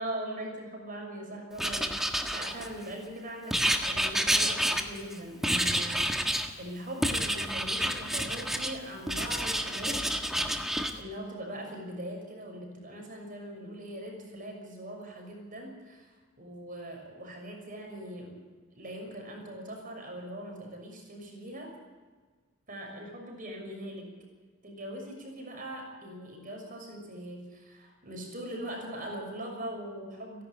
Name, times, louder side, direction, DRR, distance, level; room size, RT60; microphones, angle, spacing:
voice 1, 0.0-10.0 11.0-16.1 16.4-18.5 18.7-21.7 22.7-24.1 24.6-30.4, right 1 dB, 40° right, 2 dB, 6.2 m, -41 dB
Writing, 1.6-2.9 3.5-5.1 5.4-6.5 7.0-8.7 9.1-10.9, equal, ahead, 1.5 m, -29 dB
29.5 x 11.5 x 8.3 m, 1.5 s
head